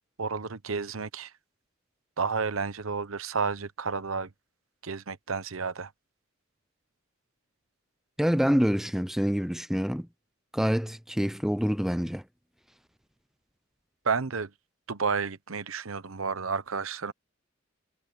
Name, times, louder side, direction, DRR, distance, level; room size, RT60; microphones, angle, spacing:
voice 1, 0.2-1.3 2.2-4.3 4.8-5.9 14.0-14.5 14.9-17.1, right 5 dB, 80° right, 1.0 m, -31 dB
voice 2, 8.2-10.1 10.5-12.2, equal, ahead, 0.5 m, -26 dB
head